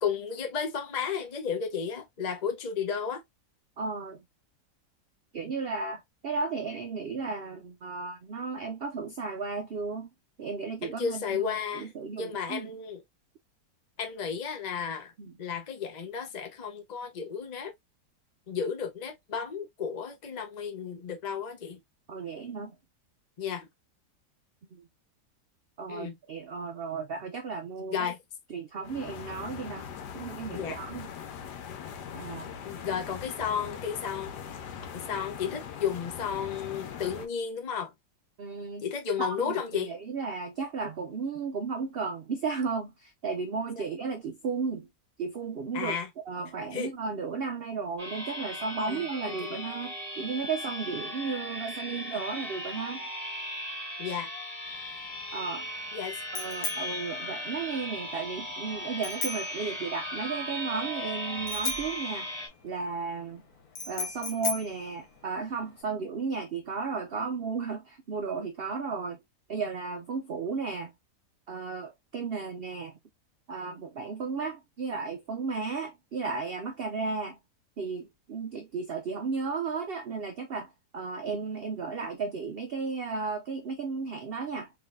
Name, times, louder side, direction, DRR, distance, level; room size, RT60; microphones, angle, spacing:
voice 1, 0.0-3.2 10.8-11.9 12.2-13.0 14.0-15.1 15.4-17.7 18.5-21.8 23.4-23.7 25.9-26.2 27.9-28.2 30.5-30.8 32.6-34.3 34.9-37.9 38.8-39.9 43.8-43.9 45.7-46.1 46.7-46.9 48.9-49.0 49.4-49.6 54.0-54.3 55.9-56.2, left 7 dB, 50° left, 0.5 m, -33 dB
voice 2, 3.8-4.2 5.3-10.1 10.4-12.7 15.2-15.3 22.1-22.7 24.7-24.9 25.8-28.1 28.5-29.8 30.1-31.1 32.1-32.5 38.4-38.9 39.2-44.9 45.2-46.0 46.3-53.1 55.3-55.7 56.3-62.3 62.6-63.4 63.9-69.2 69.5-70.9 71.5-73.0 73.5-77.4 77.8-84.7, right 4 dB, 75° right, 0.5 m, -34 dB
sound 1, 28.8-37.3, left 7 dB, 85° left, 1.3 m, -41 dB
sound 2, 48.0-62.5, equal, ahead, 1.3 m, -37 dB
Bicycle bell, 54.7-65.8, left 5 dB, 65° left, 1.6 m, -39 dB
3.8 x 3.1 x 2.5 m
omnidirectional pair, 1.8 m